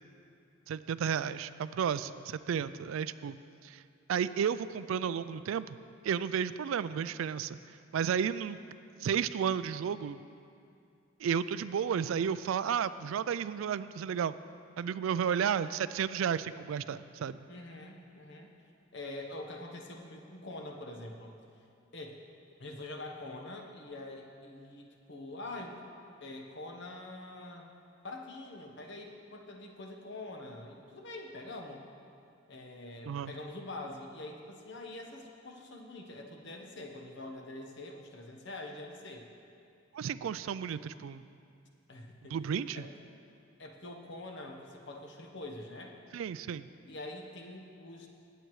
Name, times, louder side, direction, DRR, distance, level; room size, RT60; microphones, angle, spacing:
voice 1, 0.7-3.4 3.6-3.8 4.1-5.8 6.0-7.6 7.9-8.6 9.0-10.2 11.2-14.3 14.8-17.4 33.1-33.3 39.9-41.2 42.3-42.8 46.1-46.7, right 7 dB, 85° right, 15 dB, 0.3 m, -32 dB
voice 2, 17.5-18.5 18.9-21.3 21.9-22.2 22.6-25.8 26.2-27.7 28.0-31.8 32.5-39.3 41.9-42.4 42.7-42.9 43.6-46.0 46.8-48.1, left 2 dB, 60° left, 2 dB, 1.1 m, -45 dB
17.5 x 7.9 x 3.2 m, 2.5 s
head